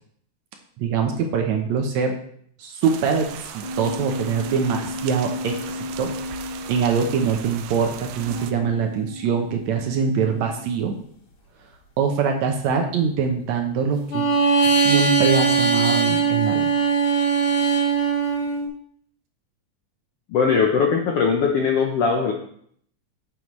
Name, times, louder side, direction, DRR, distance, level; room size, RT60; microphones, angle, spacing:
voice 1, 0.8-2.1 2.6-6.1 6.7-10.9 12.0-14.3 14.6-16.6, right 6 dB, 70° right, 3 dB, 2.0 m, -23 dB
sound 1, 2.8-8.5, right 9 dB, 85° right, 2.2 m, -38 dB
sound 2, 3.6-6.8 8.2-10.6 14.1-18.7, right 4 dB, 55° left, 1.6 m, -23 dB
voice 2, 20.3-22.3, left 5 dB, 75° left, 1 dB, 1.4 m, -20 dB
9.3 x 6.9 x 3.1 m, 0.63 s
omnidirectional pair, 3.7 m